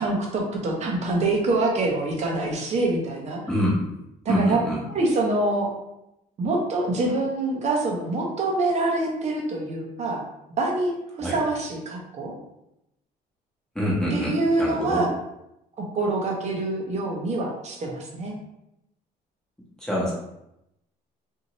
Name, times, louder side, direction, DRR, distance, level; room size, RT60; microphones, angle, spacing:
voice 1, 0.0-3.4 4.2-4.6 4.9-5.7 6.4-10.2 10.6-12.3 14.1-15.1 15.9-18.3, right 2 dB, 40° right, -1 dB, 0.9 m, -25 dB
voice 2, 3.5-3.8 4.3-4.8 11.2-11.3 13.7-14.3 14.6-15.0 19.8-20.1, equal, 5° left, -6 dB, 1.1 m, -25 dB
2.7 x 2.7 x 3.0 m, 0.85 s
cardioid pair, 110°, 17 cm